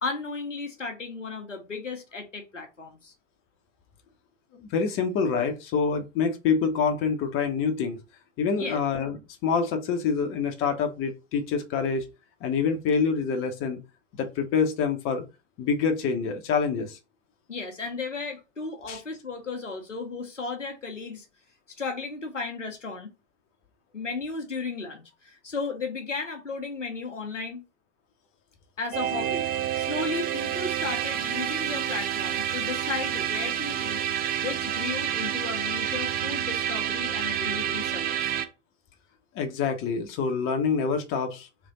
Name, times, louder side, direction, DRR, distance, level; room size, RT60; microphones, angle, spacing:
voice 1, 0.0-3.1 8.6-8.8 17.5-21.3 21.8-23.1 23.9-27.6 28.8-29.5 29.8-34.0 34.4-38.4, left 4 dB, 90° left, 1.1 m, -34 dB
voice 2, 4.5-8.0 8.4-9.2 9.4-12.0 12.4-13.8 14.1-15.2 15.6-17.0 18.9-19.0 39.3-41.5, left 5 dB, 35° left, 1.0 m, -26 dB
sound 1, 28.9-38.4, right 10 dB, 25° right, 0.7 m, -29 dB
3.4 x 3.3 x 3.9 m
figure-of-eight pair, 90°, 36 cm